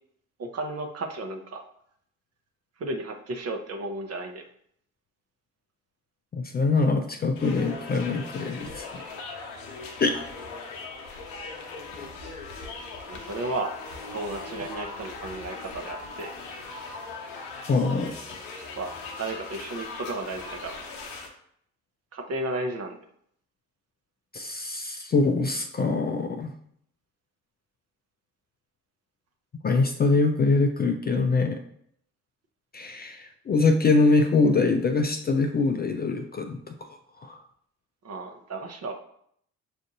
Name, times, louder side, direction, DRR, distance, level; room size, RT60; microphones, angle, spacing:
voice 1, 0.4-1.6 2.8-4.4 13.1-13.7 14.1-16.3 18.8-18.9 19.2-20.8 22.1-23.0 38.0-38.9, right 2 dB, 40° right, 4 dB, 0.8 m, -33 dB
voice 2, 6.3-9.0 10.0-10.2 17.7-18.1 24.3-26.5 29.6-31.6 32.7-36.7 37.2-37.4, left 3 dB, 25° left, 5 dB, 0.4 m, -24 dB
sound 1, 7.4-21.3, left 4 dB, 75° left, 0.7 m, -39 dB
6.2 x 2.5 x 2.6 m, 0.67 s
hypercardioid pair, 50°, 39 cm